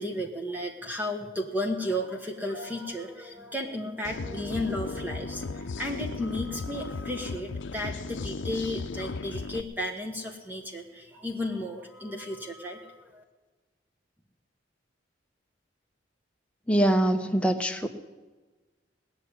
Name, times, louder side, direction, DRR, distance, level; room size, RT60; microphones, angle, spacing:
voice 1, 0.0-13.2, left 1 dB, 10° right, 2 dB, 1.3 m, -34 dB
sound 1, 4.0-9.6, left 3 dB, 85° left, 0.6 m, -36 dB
voice 2, 16.7-17.9, right 1 dB, 5° left, 4 dB, 0.9 m, -23 dB
19.0 x 6.9 x 9.8 m, 1.3 s
head